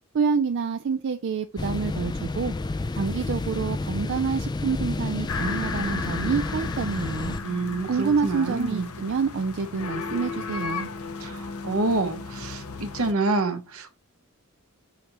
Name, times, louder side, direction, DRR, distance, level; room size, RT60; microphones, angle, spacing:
voice 1, 0.1-2.5 3.0-7.4 7.9-10.9, right 5 dB, 55° right, 0.4 m, -27 dB
sound 1, 1.6-7.4, left 2 dB, 20° left, 0.3 m, -30 dB
sound 2, 5.3-13.1, left 4 dB, 90° left, 0.9 m, -35 dB
voice 2, 7.4-8.9 11.2-13.9, right 2 dB, 75° right, 1.1 m, -27 dB
6.6 x 5.0 x 3.0 m
head